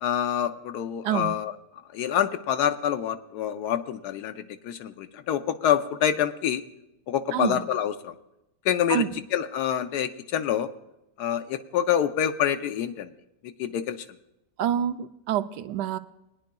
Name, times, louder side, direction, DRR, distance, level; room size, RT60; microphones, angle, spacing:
voice 1, 0.0-1.5 1.9-6.6 7.1-8.1 8.6-9.0 9.3-10.7 11.2-13.1 13.4-14.0, left 9 dB, 75° left, 9 dB, 1.2 m, -26 dB
voice 2, 7.3-7.6 8.9-9.1 14.6-16.0, right 10 dB, 85° right, 10 dB, 1.2 m, -27 dB
21.0 x 10.5 x 2.3 m, 0.90 s
omnidirectional pair, 1.8 m